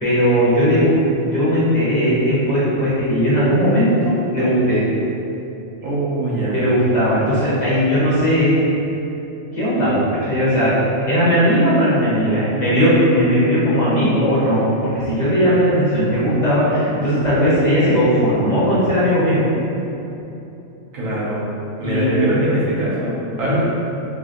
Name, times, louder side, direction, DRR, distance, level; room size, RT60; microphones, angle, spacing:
voice 1, 0.0-4.8 6.5-8.6 9.5-10.7 11.1-14.7 14.9-19.4 21.8-22.2 23.4-23.6, equal, 35° left, -11 dB, 1.2 m, -17 dB
voice 2, 5.8-6.6 20.9-21.4 21.8-23.6, right 1 dB, 90° right, -8 dB, 1.4 m, -22 dB
4.6 x 3.0 x 2.5 m, 2.9 s
omnidirectional pair, 1.4 m